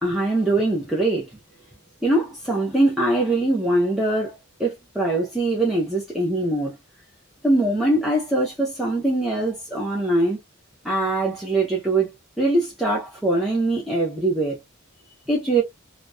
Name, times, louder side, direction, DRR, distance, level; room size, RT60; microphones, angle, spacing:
voice 1, 0.0-1.3 2.0-6.7 7.4-10.4 10.8-12.1 12.4-14.6 15.3-15.6, right 2 dB, ahead, 0.5 m, -22 dB
2.7 x 2.0 x 2.2 m
head